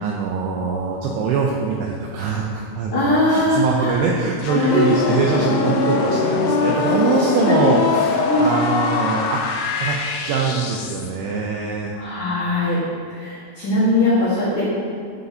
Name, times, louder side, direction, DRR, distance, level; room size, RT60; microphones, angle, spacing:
voice 1, 0.0-9.4 9.8-10.0 10.2-11.9, right 4 dB, 85° right, -1 dB, 2.3 m, -23 dB
voice 2, 2.9-4.0 4.7-4.9 7.5-7.6 8.2-8.6 11.9-12.8 13.1-14.6, left 1 dB, 60° left, -10 dB, 2.0 m, -20 dB
sound 1, 4.4-11.1, left 4 dB, 85° left, 3.1 m, -22 dB
11.0 x 6.7 x 2.7 m, 2.2 s
omnidirectional pair, 5.3 m